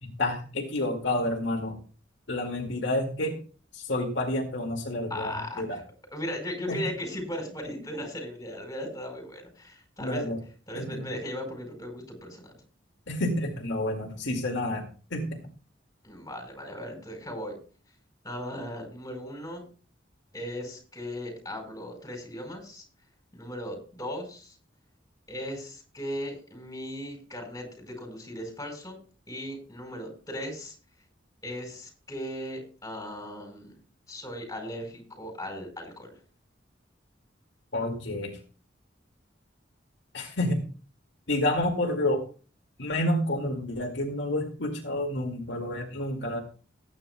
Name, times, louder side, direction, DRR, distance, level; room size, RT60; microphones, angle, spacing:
voice 1, 0.0-1.8 2.3-3.4 3.7-5.8 6.7-6.8 10.0-10.4 10.7-11.0 13.1-15.5 37.7-38.4 40.1-40.6 41.3-42.2 42.8-46.4, left 1 dB, 70° left, 1 dB, 2.2 m, -29 dB
voice 2, 5.1-5.8 6.1-10.3 10.7-12.5 16.0-17.6 18.2-19.6 20.3-22.8 23.3-24.6 25.3-29.0 29.3-30.7 31.4-33.7 34.1-36.1, left 1 dB, 20° left, 2 dB, 4.8 m, -37 dB
18.5 x 9.6 x 2.3 m, 0.38 s
head